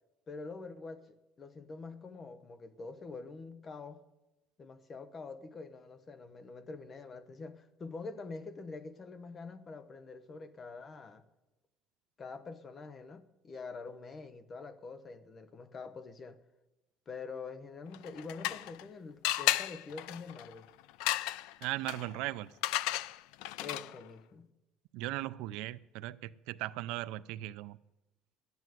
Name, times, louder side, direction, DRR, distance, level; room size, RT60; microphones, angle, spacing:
voice 1, 0.3-1.1 1.4-4.0 4.6-11.2 12.2-16.4 17.1-20.7 23.6-24.5, left 4 dB, 25° left, 0.7 m, -45 dB
sound 1, 17.9-18.9 19.2-24.1, left 16 dB, 85° left, 0.4 m, -35 dB
voice 2, 21.6-22.5 24.9-27.8, right 17 dB, 75° right, 0.4 m, -38 dB
12.5 x 9.3 x 7.7 m
cardioid pair, 175°, 0 cm